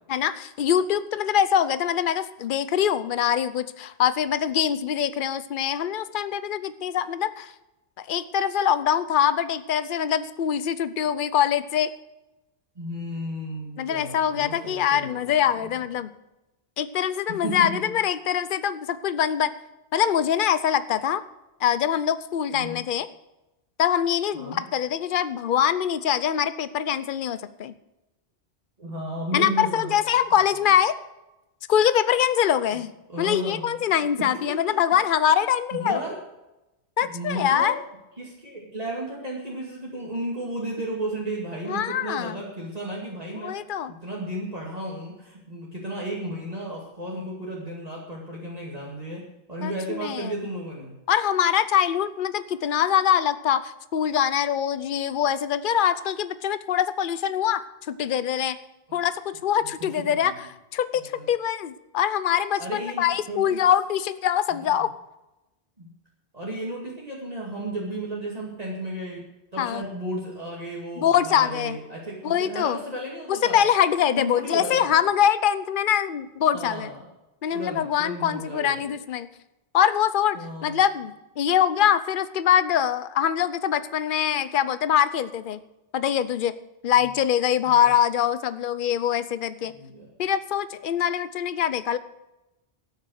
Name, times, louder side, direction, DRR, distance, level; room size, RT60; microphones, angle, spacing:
voice 1, 0.1-7.5 8.0-11.9 13.8-16.1 16.8-19.5 19.9-21.2 21.6-23.1 23.8-27.8 29.3-31.0 31.7-32.9 33.2-36.0 37.0-37.8 41.7-42.4 43.4-43.9 49.6-50.3 51.1-57.6 57.9-58.6 58.9-60.3 60.7-64.9 69.6-69.8 71.0-71.8 72.2-72.8 73.3-76.9 77.4-79.3 79.7-85.6 85.9-86.5 86.8-89.7 90.2-92.0, left 9 dB, 55° left, 14 dB, 0.8 m, -23 dB
voice 2, 12.8-15.7 17.3-17.9 22.5-22.8 24.3-24.6 28.8-30.0 33.1-33.7 34.2-34.4 35.7-36.2 37.0-37.8 38.2-43.6 43.9-49.2 49.5-51.0 58.9-59.0 59.8-60.4 60.9-61.3 62.6-63.6 64.5-64.9 65.8-65.9 66.3-69.3 69.5-73.7 74.1-74.9 76.5-77.0 77.5-78.9 80.3-80.8 87.6-87.9 89.7-90.1, right 1 dB, 35° right, -4 dB, 2.5 m, -34 dB
13.0 x 9.4 x 6.5 m, 0.97 s
omnidirectional pair, 1.2 m